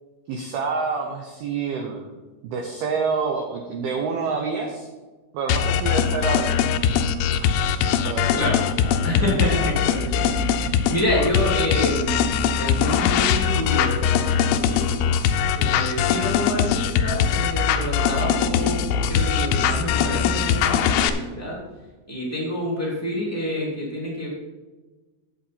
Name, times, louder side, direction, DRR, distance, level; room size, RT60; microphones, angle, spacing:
voice 1, 0.3-2.1 2.4-4.9 5.3-6.6 7.3-7.5 8.0-8.4, right 5 dB, 85° right, 1 dB, 2.2 m, -27 dB
sound 1, 5.5-21.1, left 7 dB, 80° left, 3.0 m, -21 dB
voice 2, 9.0-15.0 15.5-21.6 22.1-24.3, left 1 dB, 10° left, -5 dB, 0.7 m, -28 dB
10.0 x 8.3 x 4.4 m, 1.3 s
omnidirectional pair, 5.9 m